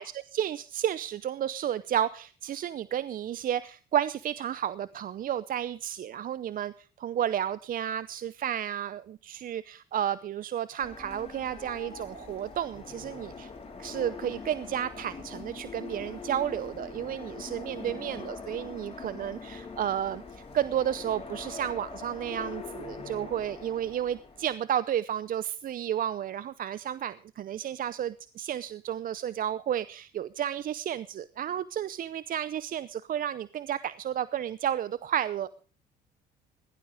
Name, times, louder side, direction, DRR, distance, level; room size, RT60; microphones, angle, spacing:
voice 1, 0.0-13.5 13.8-35.5, right 10 dB, 50° right, 16 dB, 0.6 m, -32 dB
sound 1, 10.8-24.5, left 4 dB, 30° left, 5.1 m, -43 dB
17.0 x 12.0 x 4.9 m, 0.40 s
supercardioid pair, 80°, 18 cm